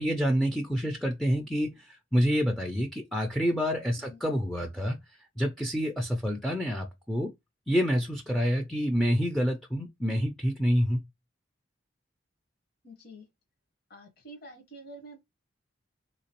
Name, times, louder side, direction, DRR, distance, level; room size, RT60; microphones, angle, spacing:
voice 1, 0.0-5.0 5.4-7.3 7.7-11.0, equal, ahead, 0.3 m, -27 dB
voice 2, 12.8-13.2 13.9-15.2, right 1 dB, 50° left, 1.1 m, -48 dB
3.4 x 2.9 x 2.9 m
head